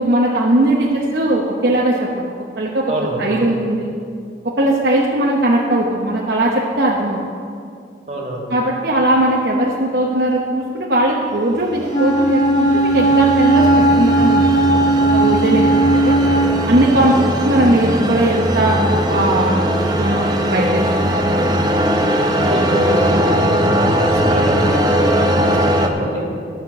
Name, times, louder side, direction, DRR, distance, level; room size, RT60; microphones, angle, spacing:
voice 1, 0.0-2.9 3.2-3.9 4.4-7.2 8.5-14.8 15.1-16.1 16.7-19.7 20.0-21.1, right 1 dB, 60° right, -3 dB, 0.9 m, -18 dB
voice 2, 2.9-3.5 8.1-8.5 17.2-17.4 22.3-26.3, right 1 dB, 40° right, -2 dB, 1.9 m, -25 dB
sound 1, 11.8-25.9, equal, 20° right, 0.7 m, -19 dB
Wind instrument woodwind instrument, 11.9-16.7, right 2 dB, 30° left, 0.9 m, -15 dB
13.0 x 5.9 x 7.1 m, 2.4 s
head